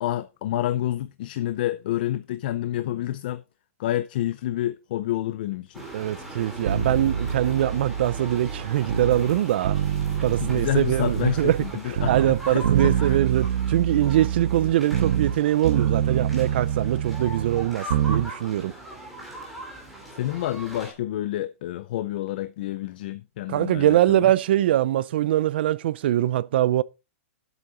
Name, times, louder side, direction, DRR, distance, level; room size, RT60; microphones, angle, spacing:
voice 1, 0.0-3.4 3.8-5.8 10.3-13.2 20.1-24.3, left 13 dB, 40° left, 0.5 m, -29 dB
sound 1, 5.7-20.9, right 2 dB, ahead, 2.7 m, -40 dB
voice 2, 5.9-9.8 10.2-11.6 11.8-18.7 23.5-26.8, right 13 dB, 45° right, 0.5 m, -23 dB
sound 2, 6.7-9.3 9.6-11.7 12.0-15.4 15.6-18.3 18.6-18.7, right 9 dB, 70° right, 1.2 m, -26 dB
10.5 x 8.2 x 3.8 m
supercardioid pair, 180°, 8 cm